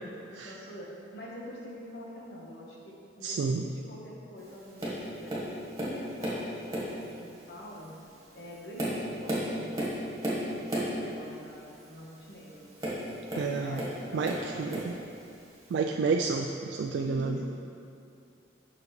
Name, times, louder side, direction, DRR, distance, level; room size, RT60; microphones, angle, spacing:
voice 1, 0.0-5.4 5.7-7.9 8.3-12.7 13.6-14.8 16.9-17.4, equal, 70° left, -3 dB, 1.2 m, -45 dB
voice 2, 3.2-3.6 13.4-13.8 14.1-14.9 15.7-17.4, right 4 dB, 75° right, 2 dB, 0.3 m, -30 dB
Tap, 4.8-5.0 5.3-6.4 6.7-7.1 7.7-7.9 8.4-11.0 12.8-14.0 14.2-15.0 15.7-15.8, equal, 20° right, 1.4 m, -33 dB
6.9 x 6.1 x 3.2 m, 2.5 s
head